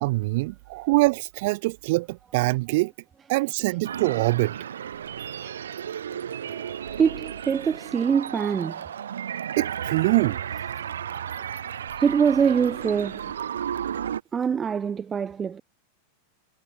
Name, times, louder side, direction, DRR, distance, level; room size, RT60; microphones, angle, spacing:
voice 1, 0.0-2.9 3.3-4.6 9.6-10.4, right 22 dB, 50° right, 1.1 m, -24 dB
sound 1, 3.8-14.2, right 9 dB, 65° right, 3.6 m, -33 dB
voice 2, 5.2-5.7 6.3-9.3 12.0-13.3 14.3-15.6, right 7 dB, 20° right, 1.2 m, -25 dB
figure-of-eight pair, 90°, 0 cm